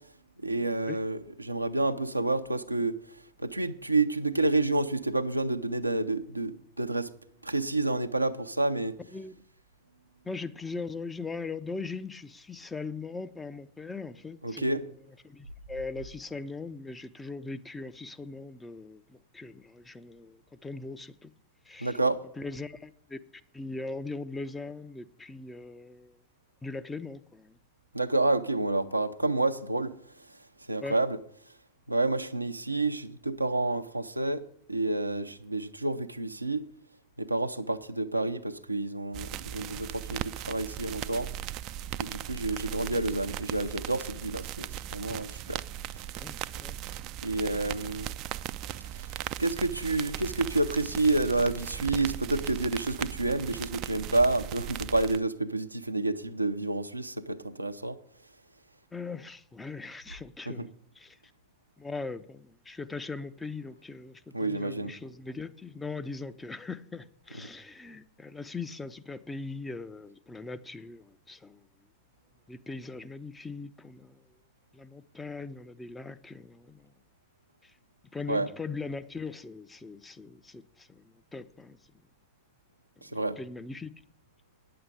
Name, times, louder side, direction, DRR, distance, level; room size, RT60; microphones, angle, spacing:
voice 1, 0.4-3.0 3.4-7.1 7.4-8.9 14.4-14.8 21.8-22.2 27.9-29.9 30.7-31.2 31.9-34.4 34.7-36.6 37.2-41.3 42.0-45.6 47.2-48.1 49.4-58.0 60.5-60.7 64.3-64.9 78.3-78.5 83.0-83.4, right 2 dB, 85° right, 0.6 m, -29 dB
voice 2, 10.2-14.9 15.2-21.3 21.6-22.0 22.4-23.2 23.5-26.2 26.6-27.6 30.8-31.0 46.2-46.8 58.9-60.7 61.0-61.2 61.8-71.7 72.5-74.3 74.7-76.9 77.6-77.7 78.1-81.8 83.1-83.9, left 3 dB, 10° left, 0.6 m, -40 dB
sound 1, 39.1-55.2, right 12 dB, 40° right, 0.4 m, -38 dB
9.4 x 7.7 x 8.2 m
figure-of-eight pair, 90°, 0 cm